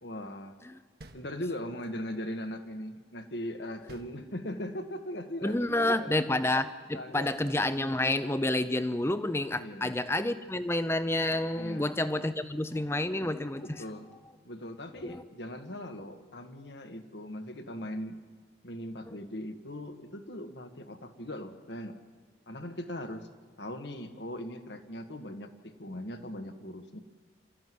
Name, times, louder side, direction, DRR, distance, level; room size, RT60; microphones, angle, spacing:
voice 1, 0.0-0.6 1.1-6.2 6.9-7.5 9.6-9.9 11.5-11.9 13.6-14.1 14.4-18.2 18.6-22.0 22.5-23.3 23.6-27.0, left 1 dB, 70° left, 7 dB, 1.6 m, -39 dB
sound 1, 1.0-1.9 3.9-4.8, right 1 dB, 55° right, 1.5 m, -52 dB
voice 2, 5.4-13.8 15.0-15.2 19.1-19.2, left 1 dB, 15° left, 12 dB, 0.7 m, -29 dB
28.0 x 14.0 x 9.5 m, 1.5 s
head